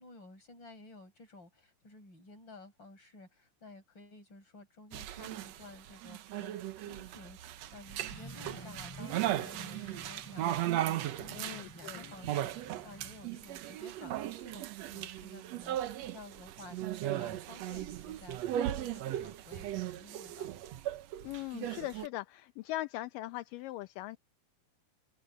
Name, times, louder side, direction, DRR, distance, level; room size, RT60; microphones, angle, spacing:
voice 1, 0.0-20.5, left 2 dB, 30° left, 7.2 m, -53 dB
sound 1, 4.9-22.1, right 13 dB, 85° right, 1.5 m, -37 dB
sound 2, 7.8-8.7 9.1-10.3 12.0-13.9, right 3 dB, 45° right, 9.1 m, -66 dB
sound 3, 8.1-13.2, equal, 5° left, 5.9 m, -51 dB
voice 2, 11.3-12.1 21.2-24.2, left 17 dB, 75° left, 2.2 m, -40 dB
open air
omnidirectional pair, 4.3 m